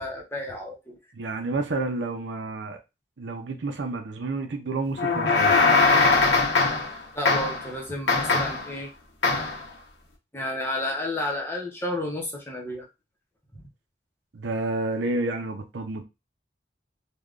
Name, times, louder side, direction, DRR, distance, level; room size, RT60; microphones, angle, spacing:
voice 1, 0.0-1.0 7.1-8.9 10.3-12.9 13.5-13.6, left 1 dB, 15° left, 0.7 m, -31 dB
voice 2, 1.1-2.8 3.2-5.6 14.3-16.0, right 2 dB, 80° right, 0.6 m, -30 dB
sound 1, 5.0-7.0 7.2-7.7 8.1-8.7 9.2-9.6, left 3 dB, 90° left, 0.9 m, -21 dB
3.4 x 2.2 x 2.4 m
head